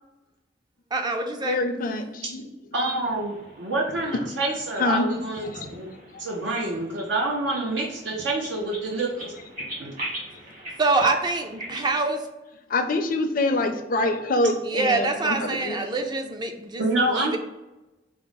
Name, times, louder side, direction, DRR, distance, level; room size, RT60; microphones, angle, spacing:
voice 1, 0.9-1.6 10.8-12.2 14.6-17.4, right 3 dB, 25° right, 4 dB, 0.4 m, -25 dB
voice 2, 1.4-2.5 4.1-4.2 4.8-5.1 5.5-5.7 6.1-6.2 12.7-15.8, left 2 dB, 50° left, 6 dB, 0.5 m, -25 dB
voice 3, 2.7-5.9 6.2-9.3 9.8-9.9 16.8-17.4, right 2 dB, 70° right, -1 dB, 0.6 m, -27 dB
sound 1, 3.0-12.0, right 1 dB, 50° right, 1.4 m, -41 dB
4.5 x 2.0 x 3.9 m, 1.0 s
head